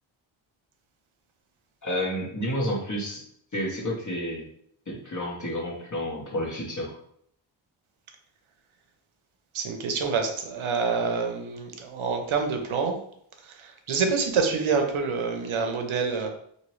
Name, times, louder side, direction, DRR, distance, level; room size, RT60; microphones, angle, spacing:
voice 1, 1.8-3.2 3.5-4.5 4.9-7.0, equal, 35° left, -3 dB, 1.2 m, -30 dB
voice 2, 9.5-13.0 13.4-16.3, right 5 dB, 75° right, 4 dB, 0.7 m, -27 dB
2.9 x 2.7 x 3.0 m, 0.67 s
cardioid pair, 65°, 49 cm